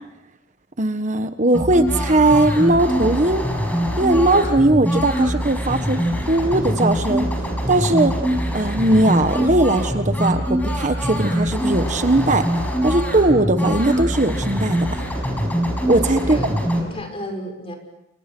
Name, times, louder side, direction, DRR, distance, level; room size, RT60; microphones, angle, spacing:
voice 1, 0.8-3.4 4.0-6.0 6.3-7.3 7.7-8.1 8.5-12.5 12.8-14.9 15.9-16.4, right 2 dB, 40° right, 8 dB, 1.4 m, -19 dB
sound 1, 1.5-16.8, equal, 10° left, 5.8 m, -23 dB
voice 2, 16.0-17.7, equal, 30° left, 4 dB, 6.2 m, -33 dB
30.0 x 28.0 x 6.2 m, 0.88 s
head